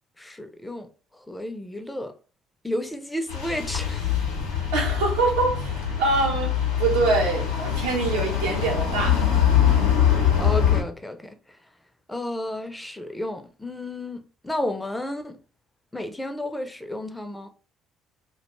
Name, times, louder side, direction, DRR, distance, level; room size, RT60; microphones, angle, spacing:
voice 1, 0.2-2.1 2.6-4.1 10.4-11.6 12.1-15.4 15.9-17.5, left 1 dB, 10° left, 0.5 m, -32 dB
sound 1, 3.3-10.8, left 9 dB, 85° left, 0.6 m, -23 dB
voice 2, 4.5-9.2, right 3 dB, 80° right, 0.8 m, -25 dB
2.4 x 2.2 x 2.9 m
hypercardioid pair, 55°, 0 cm